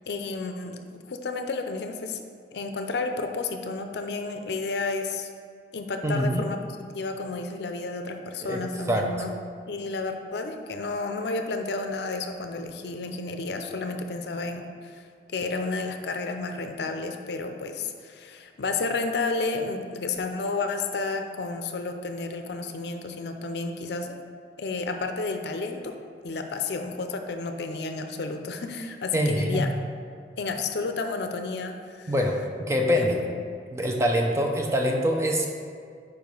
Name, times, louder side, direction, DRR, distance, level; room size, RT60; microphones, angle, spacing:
voice 1, 0.1-0.8 1.0-2.2 2.5-5.3 5.7-6.6 6.9-9.3 9.7-24.1 24.6-25.9 26.2-29.7 30.4-32.1 33.0-33.4 33.9-34.0, left 3 dB, 65° left, 6 dB, 0.5 m, -31 dB
voice 2, 6.0-6.5 8.4-8.6 8.9-9.1 29.1-29.8 32.1-33.2 33.7-35.5, equal, 15° right, 2 dB, 0.4 m, -24 dB
4.8 x 4.8 x 5.2 m, 2.2 s
head